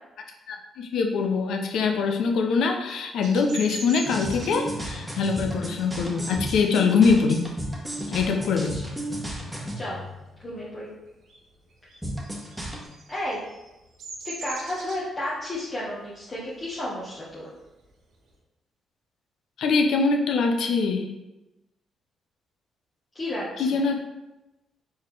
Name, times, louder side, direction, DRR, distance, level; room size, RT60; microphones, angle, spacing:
voice 1, 0.5-7.5 8.1-8.8 19.6-21.1 23.6-24.0, left 4 dB, 75° left, 4 dB, 0.6 m, -23 dB
Bird vocalization bird call bird song, 3.2-8.4 8.8-9.2 9.5-10.7 11.0-18.3, right 3 dB, 75° right, 1.0 m, -43 dB
sound 1, 4.0-10.6 12.0-12.9, equal, 10° right, 1.2 m, -34 dB
voice 2, 9.5-10.0 10.4-10.9 13.1-13.4 14.2-17.5 23.1-23.8, left 1 dB, 40° left, -8 dB, 1.3 m, -32 dB
4.2 x 3.8 x 3.3 m, 0.97 s
supercardioid pair, 60°, 0 cm